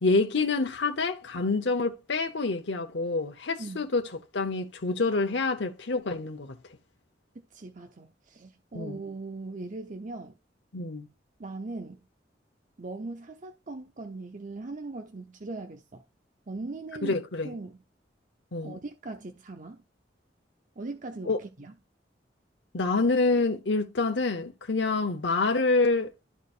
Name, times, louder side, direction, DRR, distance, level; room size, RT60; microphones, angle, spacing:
voice 1, 0.0-4.0 4.3-6.6 8.7-9.0 10.7-11.1 17.0-17.5 18.5-18.8 21.3-21.4 22.7-26.1, left 3 dB, 75° left, 0.9 m, -27 dB
voice 2, 7.5-10.3 11.4-12.0 12.8-16.0 16.5-17.2 17.4-17.8 18.6-19.8 20.8-21.7, right 3 dB, 45° right, 0.8 m, -39 dB
13.0 x 4.4 x 2.4 m
head